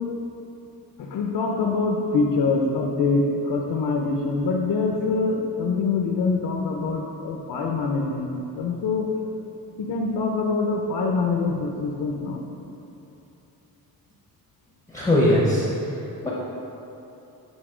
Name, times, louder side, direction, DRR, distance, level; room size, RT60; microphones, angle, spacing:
voice 1, 1.0-8.3 8.6-9.1 9.8-12.4, left 4 dB, 75° left, 1 dB, 0.7 m, -24 dB
voice 2, 14.9-15.9 16.2-16.3, left 1 dB, 10° left, -6 dB, 0.8 m, -20 dB
9.2 x 4.0 x 5.0 m, 2.9 s
wide cardioid pair, 180°, 37 cm